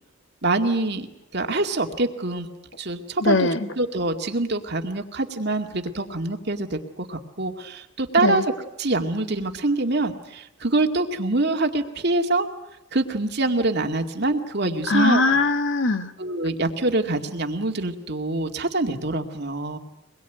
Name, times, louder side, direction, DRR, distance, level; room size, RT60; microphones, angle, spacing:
voice 1, 0.4-1.1 1.3-2.5 2.8-3.5 3.8-8.5 8.8-12.5 12.9-15.4 16.2-19.8, right 2 dB, 50° right, 5 dB, 2.2 m, -25 dB
voice 2, 3.2-3.6 8.2-8.4 14.9-16.1, left 3 dB, 60° left, 10 dB, 1.5 m, -20 dB
25.0 x 21.5 x 9.3 m, 0.88 s
head